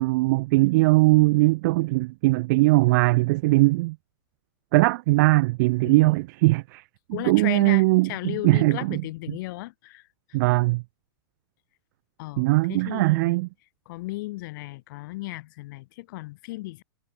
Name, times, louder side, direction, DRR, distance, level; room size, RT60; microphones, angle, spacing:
voice 1, 0.0-4.0 4.7-6.8 7.2-9.0 10.3-10.8 12.4-13.5, right 22 dB, 50° right, 0.5 m, -20 dB
voice 2, 7.1-10.1 12.2-13.4 13.9-16.8, left 20 dB, 55° left, 2.2 m, -35 dB
hypercardioid pair, 125°, 13 cm